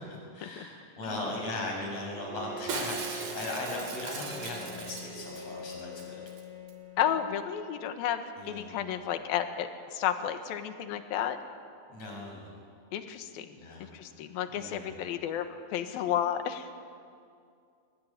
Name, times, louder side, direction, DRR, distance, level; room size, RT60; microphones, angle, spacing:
voice 1, 0.0-6.2 8.4-8.7 11.9-12.5 13.6-13.9 14.5-14.9, left 2 dB, 35° left, 0 dB, 7.4 m, -38 dB
Bowed string instrument, 2.1-7.5, equal, 20° right, 2.2 m, -44 dB
Shatter, 2.7-5.4 5.7-5.8 6.0-6.4 6.7-6.8, right 5 dB, 55° right, 4.1 m, -39 dB
voice 2, 7.0-11.4 12.9-13.5 13.8-16.7, left 10 dB, 65° left, 8 dB, 2.9 m, -32 dB
24.5 x 22.5 x 9.8 m, 2.3 s
omnidirectional pair, 5.1 m